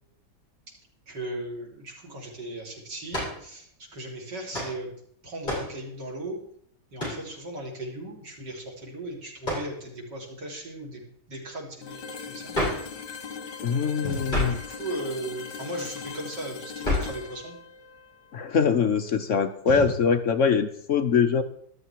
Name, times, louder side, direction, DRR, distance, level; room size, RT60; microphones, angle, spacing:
voice 1, 1.1-4.9 5.2-6.4 6.9-11.0 11.3-12.9 14.0-17.5 19.7-19.9, right 1 dB, 90° right, -1 dB, 4.3 m, -37 dB
sound 1, 3.1-3.4 4.5-4.8 5.4-5.8 7.0-7.3 9.4-9.7 12.5-12.9 14.3-14.7 16.8-17.2, left 1 dB, 25° left, 8.1 m, -29 dB
sound 2, 11.8-19.6, left 5 dB, 75° left, 2.0 m, -40 dB
voice 2, 13.6-14.5 18.3-21.4, left 6 dB, 55° left, 8 dB, 1.0 m, -23 dB
13.5 x 13.0 x 4.6 m, 0.65 s
omnidirectional pair, 1.8 m